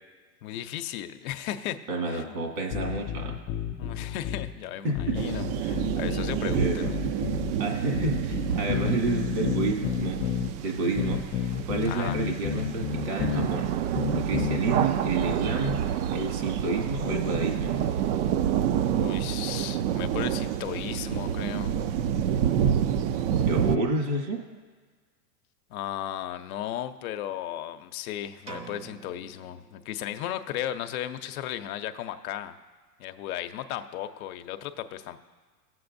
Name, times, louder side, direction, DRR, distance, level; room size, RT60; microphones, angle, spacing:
voice 1, 0.4-2.3 3.8-7.0 11.8-12.2 18.8-21.7 25.7-32.6 33.0-35.2, left 11 dB, 60° left, 9 dB, 0.7 m, -35 dB
voice 2, 1.9-3.4 3.8-3.9 4.8-5.2 6.5-6.9 7.6-10.2 10.6-13.7 14.1-15.8 16.1-17.8 23.4-24.4, right 3 dB, 75° right, 2 dB, 2.3 m, -29 dB
sound 1, 2.7-4.5 5.0-7.6 8.0-10.5 11.0-13.5 14.0-14.6, left 8 dB, 25° left, 0.3 m, -31 dB
sound 2, 5.1-23.8, right 9 dB, 50° right, 0.5 m, -28 dB
sound 3, 28.5-30.3, right 4 dB, 10° right, 0.7 m, -45 dB
18.0 x 7.7 x 2.6 m, 1.5 s
hypercardioid pair, 110°, 50 cm